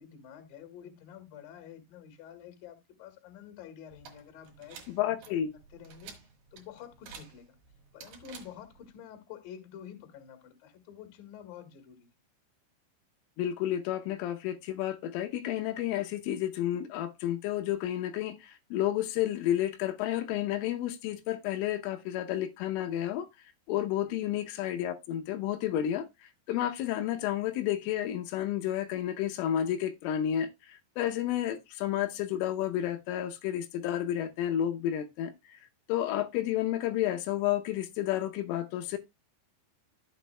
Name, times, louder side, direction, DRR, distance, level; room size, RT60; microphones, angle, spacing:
voice 1, 0.0-5.5 5.7-6.1 6.5-7.4 7.9-12.1 24.0-24.2, left 9 dB, 55° left, 3.0 m, -49 dB
sound 1, 3.9-8.9, right 6 dB, 60° right, 2.6 m, -52 dB
voice 2, 4.9-5.6 13.4-23.3 23.7-35.6 35.9-39.0, left 12 dB, 85° left, 3.5 m, -31 dB
13.5 x 7.3 x 2.3 m
omnidirectional pair, 5.6 m